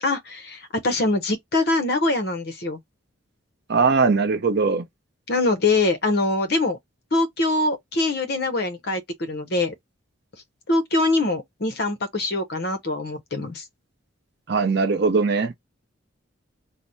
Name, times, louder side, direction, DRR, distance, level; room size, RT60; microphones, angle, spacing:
voice 1, 0.0-2.8 5.3-6.8 7.1-9.7 10.7-13.6, left 2 dB, 50° left, 0.7 m, -23 dB
voice 2, 3.7-4.8 14.5-15.5, right 4 dB, 55° right, 0.5 m, -20 dB
3.2 x 2.0 x 3.9 m
head